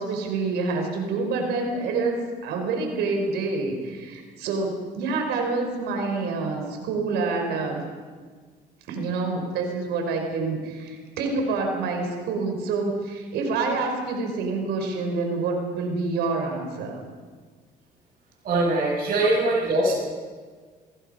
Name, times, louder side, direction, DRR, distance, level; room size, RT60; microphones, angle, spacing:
voice 1, 0.0-7.8 8.9-17.0 19.2-19.7, right 3 dB, 80° right, 3 dB, 4.9 m, -27 dB
voice 2, 18.4-20.0, right 2 dB, 55° right, -8 dB, 7.8 m, -22 dB
25.5 x 21.0 x 5.6 m, 1.6 s
cardioid pair, 110°, 17 cm